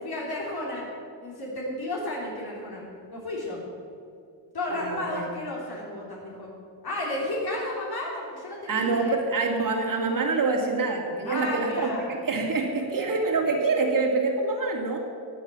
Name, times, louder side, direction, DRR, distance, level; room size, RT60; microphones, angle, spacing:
voice 1, 0.0-0.8 1.2-2.8 3.1-3.6 4.5-6.5 6.8-9.1 11.2-12.1, left 1 dB, 50° left, -4 dB, 3.3 m, -32 dB
voice 2, 4.7-5.3 8.7-15.0, right 3 dB, 40° right, 1 dB, 2.6 m, -26 dB
12.5 x 8.6 x 7.7 m, 2.4 s
cardioid pair, 90°, 48 cm